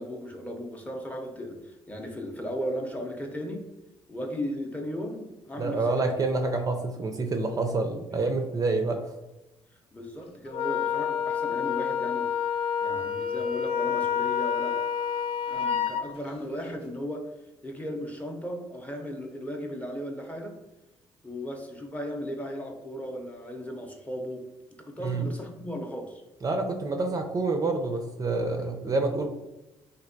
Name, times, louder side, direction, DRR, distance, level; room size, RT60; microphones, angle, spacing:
voice 1, 0.0-3.6 4.1-6.1 8.1-8.2 9.9-12.3 12.8-14.8 15.5-17.3 17.6-20.5 21.2-24.4 24.8-26.2 28.6-28.7, equal, 15° left, 3 dB, 0.6 m, -36 dB
voice 2, 5.6-9.1 25.0-25.3 26.4-29.3, right 3 dB, 30° right, 4 dB, 0.4 m, -27 dB
Wind instrument woodwind instrument, 10.5-16.0, left 8 dB, 60° left, 0.4 m, -28 dB
3.3 x 2.7 x 2.6 m, 1.0 s
cardioid pair, 85°, 11 cm